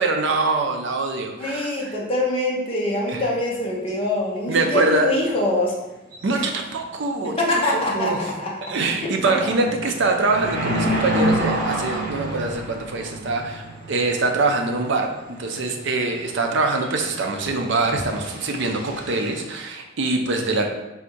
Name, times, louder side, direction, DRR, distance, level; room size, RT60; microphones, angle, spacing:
voice 1, 0.0-1.9 3.1-3.2 4.5-5.1 6.2-8.2 8.7-15.1 15.4-20.7, right 3 dB, 60° right, 3 dB, 0.5 m, -24 dB
voice 2, 1.4-5.7 6.3-6.5 7.2-8.5 9.0-9.1, left 1 dB, 25° left, -4 dB, 0.8 m, -24 dB
sound 1, 3.5-3.6 3.9-4.0 6.1-6.5 6.8-6.9 7.4-7.7 8.2-8.3 8.6-19.4, right 1 dB, 45° right, 0.9 m, -30 dB
3.5 x 2.6 x 4.4 m, 1.0 s
head